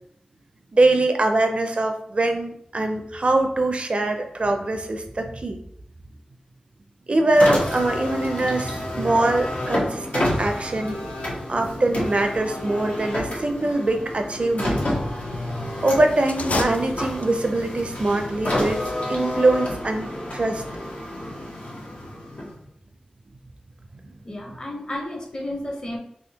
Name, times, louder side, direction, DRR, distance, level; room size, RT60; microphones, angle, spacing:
voice 1, 0.7-5.6 7.1-11.0 11.5-14.8 15.8-18.8 19.1-20.6, right 2 dB, 50° right, 5 dB, 0.4 m, -22 dB
Car, 7.3-22.7, left 1 dB, 90° left, 1.0 m, -29 dB
FX kill switch single record, 16.2-17.6, left 3 dB, 70° left, 0.3 m, -29 dB
voice 2, 24.2-26.0, left 1 dB, 35° left, 0 dB, 0.7 m, -32 dB
3.5 x 2.7 x 2.8 m, 0.71 s
wide cardioid pair, 90°, 3 cm